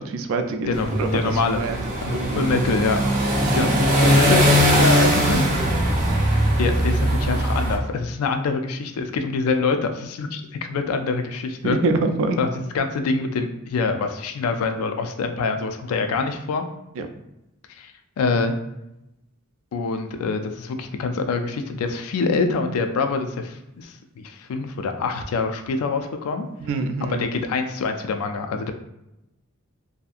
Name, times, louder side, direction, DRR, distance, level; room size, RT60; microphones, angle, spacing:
voice 1, 0.0-2.5 3.4-3.6 11.6-12.4 17.0-17.1 26.6-27.2, right 3 dB, 70° right, 8 dB, 0.3 m, -26 dB
voice 2, 0.7-1.6 2.0-3.0 3.3-4.5 4.7-5.5 6.6-10.4 10.7-11.8 12.4-16.7 17.8-18.5 19.7-26.5 27.0-28.7, left 4 dB, 90° left, 7 dB, 0.3 m, -25 dB
sound 1, 0.7-7.8, equal, 40° right, 0.7 m, -20 dB
2.6 x 2.4 x 2.4 m, 0.91 s
head